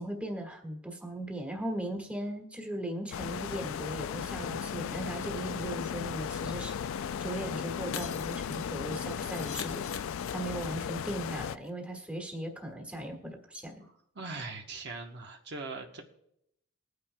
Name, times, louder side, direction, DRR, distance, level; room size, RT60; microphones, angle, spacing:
voice 1, 0.0-9.8 10.3-13.8, right 1 dB, 5° right, 2 dB, 1.6 m, -38 dB
sound 1, 3.1-11.6, left 7 dB, 65° left, 0.3 m, -36 dB
Shatter, 7.9-11.0 11.3-11.4 11.7-11.8, left 7 dB, 85° left, 1.0 m, -43 dB
voice 2, 13.8-16.0, right 3 dB, 50° right, 3 dB, 1.0 m, -41 dB
21.0 x 9.5 x 2.2 m, 0.76 s
head